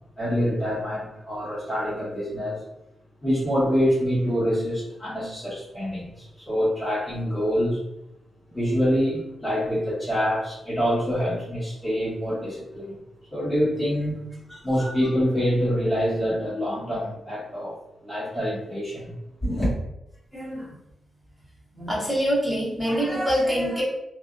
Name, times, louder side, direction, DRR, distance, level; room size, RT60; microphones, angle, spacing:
voice 1, 0.2-2.6 3.2-7.8 8.5-13.0 13.3-14.2 14.6-17.8 18.0-19.1 19.4-19.8, equal, 15° left, -8 dB, 1.2 m, -25 dB
voice 2, 20.3-20.7 21.7-23.8, equal, ahead, -6 dB, 0.8 m, -25 dB
2.5 x 2.0 x 2.5 m, 0.84 s
wide cardioid pair, 140°, 0 cm